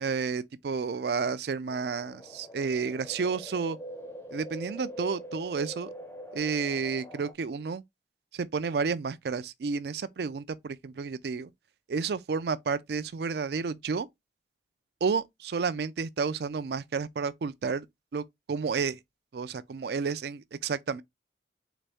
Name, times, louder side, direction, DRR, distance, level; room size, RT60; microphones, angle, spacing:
voice 1, 0.0-3.8 4.3-5.9 6.3-7.8 8.3-11.5 11.9-14.1 15.0-17.9 18.1-19.0 19.3-21.0, right 5 dB, 60° right, 0.4 m, -31 dB
sound 1, 1.7-7.3, equal, 15° left, 0.6 m, -43 dB
4.0 x 3.2 x 3.4 m
head